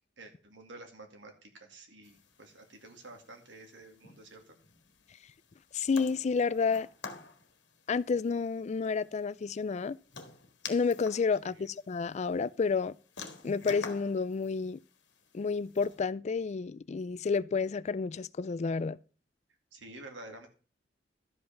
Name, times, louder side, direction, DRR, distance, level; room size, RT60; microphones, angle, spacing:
voice 1, 0.2-4.6 11.4-11.7 19.7-20.5, right 2 dB, 80° right, 2.3 m, -50 dB
sound 1, 2.0-16.0, left 5 dB, 75° left, 1.7 m, -50 dB
voice 2, 5.7-6.9 7.9-10.0 10.7-12.9 13.4-14.8 15.3-19.0, left 5 dB, 40° left, 0.4 m, -30 dB
12.0 x 5.4 x 5.7 m
head